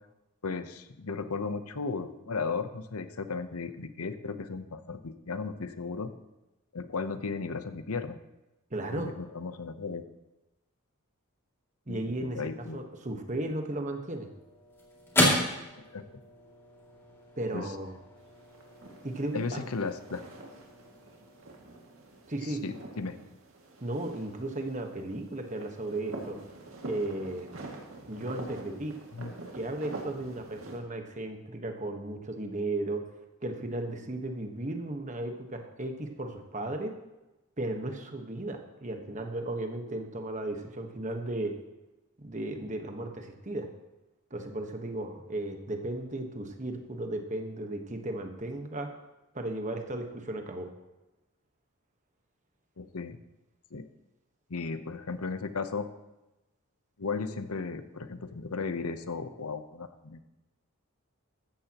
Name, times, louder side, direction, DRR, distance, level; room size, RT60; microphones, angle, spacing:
voice 1, 0.4-6.1 6.7-8.2 8.9-10.0 11.9-12.8 15.8-16.2 17.5-17.7 19.3-20.2 22.4-23.2 29.1-29.3 52.8-53.2 53.7-53.9 54.5-55.9 57.0-60.2, left 4 dB, 85° left, 10 dB, 0.9 m, -35 dB
voice 2, 8.7-9.1 11.9-14.3 17.4-17.9 19.0-19.7 22.3-22.6 23.8-26.4 26.8-27.5 28.1-28.9 29.5-33.0 33.4-36.9 37.6-41.5 42.2-43.7 44.3-48.9 49.3-50.7, right 1 dB, 35° right, 4 dB, 1.3 m, -35 dB
sound 1, 13.9-22.4, left 1 dB, 10° left, 2.5 m, -34 dB
sound 2, 18.2-30.8, right 2 dB, 65° right, 2.3 m, -46 dB
15.0 x 13.5 x 3.0 m, 1.0 s
head